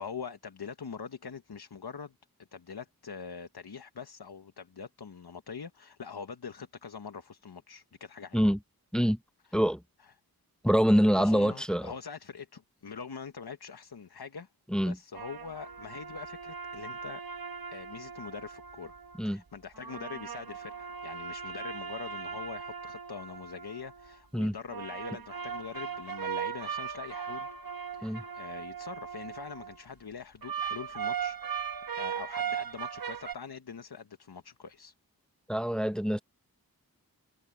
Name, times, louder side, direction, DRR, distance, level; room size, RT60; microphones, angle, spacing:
voice 1, 0.0-2.1 2.5-8.5 11.1-14.5 14.8-17.2 17.7-18.9 19.2-27.5 27.9-34.9, left 6 dB, 80° left, 1.1 m, -43 dB
voice 2, 10.6-11.9 14.7-15.0 19.2-19.4 24.3-24.5 28.0-28.2 35.5-36.2, equal, ahead, 0.9 m, -25 dB
sound 1, 15.1-19.2 19.7-24.2 24.7-29.8 30.4-33.3, right 7 dB, 65° right, 1.3 m, -38 dB
wide cardioid pair, 45°, 38 cm